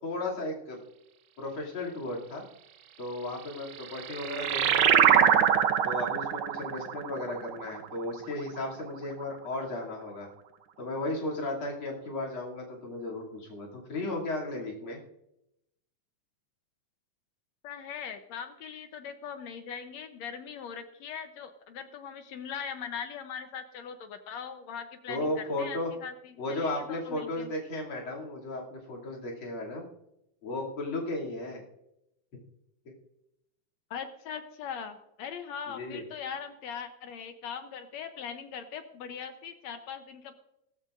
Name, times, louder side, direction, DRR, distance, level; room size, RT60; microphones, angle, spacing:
voice 1, 0.0-0.8 1.4-2.4 3.0-5.3 5.8-10.3 10.8-15.0 25.1-25.9 26.4-29.8 30.4-31.6 35.7-36.0, left 2 dB, 40° left, -2 dB, 3.3 m, -35 dB
sound 1, 3.6-8.6, right 9 dB, 85° right, 1.2 m, -25 dB
voice 2, 17.6-27.5 33.9-40.4, left 7 dB, 70° left, 8 dB, 1.8 m, -40 dB
17.0 x 15.0 x 2.5 m, 0.84 s
omnidirectional pair, 3.6 m